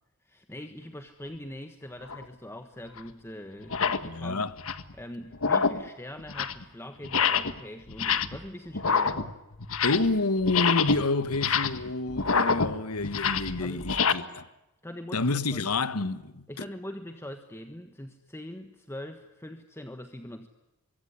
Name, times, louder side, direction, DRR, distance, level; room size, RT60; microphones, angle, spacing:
voice 1, 0.2-4.4 4.9-9.4 13.6-14.3 14.8-15.7 16.5-20.5, left 1 dB, 10° left, 1.4 m, -42 dB
sound 1, 2.1-2.3 3.0-3.1 3.6-4.1 4.5-4.9 5.3-5.9 6.2-6.6 7.0-7.6 7.9-8.5 8.7-10.2 10.4-14.1, left 5 dB, 65° left, 1.5 m, -27 dB
voice 2, 4.0-4.5 9.8-14.5 15.1-16.4, left 3 dB, 80° left, 1.4 m, -28 dB
25.5 x 23.5 x 10.0 m
head